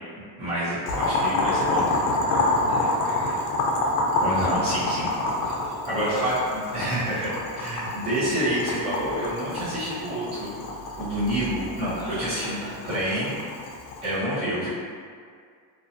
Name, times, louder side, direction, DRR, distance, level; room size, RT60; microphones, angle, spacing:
voice 1, 0.4-2.0 4.2-5.1 5.9-10.5 11.0-13.3 14.0-14.7, right 1 dB, 15° right, -13 dB, 0.5 m, -28 dB
Boiling, 0.9-14.1, left 2 dB, 65° left, 0.5 m, -27 dB
voice 2, 2.2-3.4 5.4-5.8 6.1-6.3 11.9-13.4 13.9-14.5, equal, ahead, -16 dB, 1.2 m, -42 dB
2.8 x 2.1 x 2.5 m, 2.1 s
cardioid pair, 175°, 47 cm